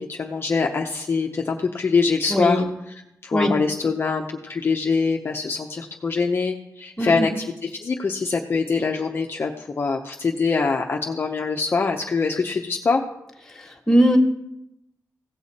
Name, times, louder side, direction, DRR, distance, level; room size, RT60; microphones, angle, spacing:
voice 1, 0.0-13.0, left 4 dB, 40° left, 1 dB, 0.7 m, -24 dB
voice 2, 2.3-2.6 3.3-3.5 7.0-7.3 13.9-14.2, equal, 5° left, 1 dB, 1.7 m, -19 dB
16.5 x 6.9 x 4.2 m, 0.85 s
wide cardioid pair, 120°, 6 cm